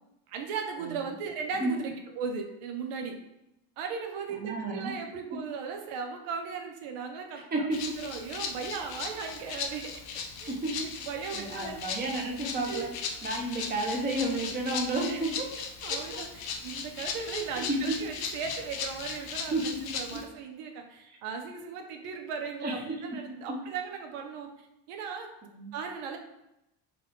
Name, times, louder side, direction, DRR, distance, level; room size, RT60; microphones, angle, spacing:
voice 1, 0.3-3.2 3.8-7.7 8.0-9.9 10.4-10.6 11.0-11.8 12.7-12.9 15.0-15.2 15.8-19.7 19.9-24.5 24.9-25.3 25.7-26.2, right 5 dB, 85° right, 4 dB, 0.9 m, -37 dB
voice 2, 4.4-4.9 7.5-7.8 10.5-11.0 11.3-12.9 13.2-15.5 17.6-18.0 19.5-20.0 21.1-21.2 22.6-22.7 23.0-23.3 25.5-25.7, right 2 dB, 20° right, -1 dB, 0.7 m, -31 dB
Rattle (instrument), 7.7-20.2, left 5 dB, 50° left, 0.6 m, -38 dB
4.0 x 2.3 x 4.6 m, 0.87 s
cardioid pair, 150°, 50 cm